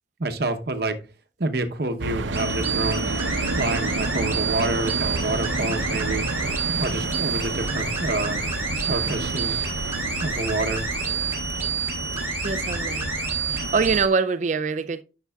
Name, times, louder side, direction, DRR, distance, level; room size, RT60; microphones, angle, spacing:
voice 1, 0.2-1.0 1.4-3.1 3.6-6.3 6.8-8.4 8.8-9.7 10.2-10.9 12.1-12.3 13.6-13.7, right 2 dB, 55° right, 0.9 m, -28 dB
sound 1, 2.0-14.0, right 2 dB, 90° right, 0.7 m, -30 dB
sound 2, 2.3-14.1, right 4 dB, 15° right, 1.8 m, -29 dB
voice 2, 12.4-13.1 13.5-15.0, right 5 dB, 40° right, 0.4 m, -24 dB
11.5 x 5.9 x 2.3 m
head